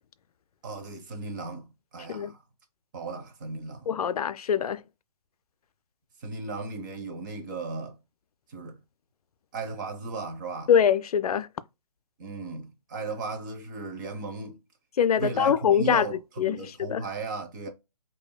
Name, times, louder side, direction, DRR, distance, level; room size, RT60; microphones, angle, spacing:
voice 1, 0.6-1.7 1.9-2.4 2.9-3.9 6.2-8.0 8.5-8.8 9.5-10.7 12.2-14.6 15.2-17.7, right 4 dB, 30° right, 0.8 m, -36 dB
voice 2, 3.9-4.8 10.7-11.5 15.0-17.0, left 8 dB, 65° left, 0.4 m, -24 dB
5.1 x 2.6 x 2.2 m
hypercardioid pair, 155°, 21 cm